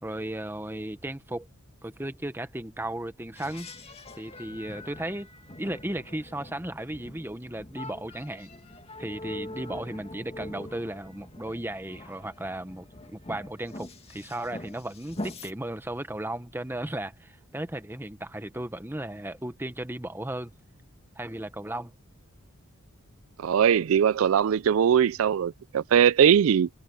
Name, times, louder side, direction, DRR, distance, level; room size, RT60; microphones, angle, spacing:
voice 1, 0.0-1.5 1.8-3.7 4.2-5.3 5.6-8.5 9.0-20.5 21.2-21.9, right 1 dB, 10° right, 1.1 m, -35 dB
sound 1, 3.4-15.5, left 1 dB, 30° left, 2.2 m, -43 dB
voice 2, 23.4-26.7, right 8 dB, 75° right, 0.4 m, -21 dB
head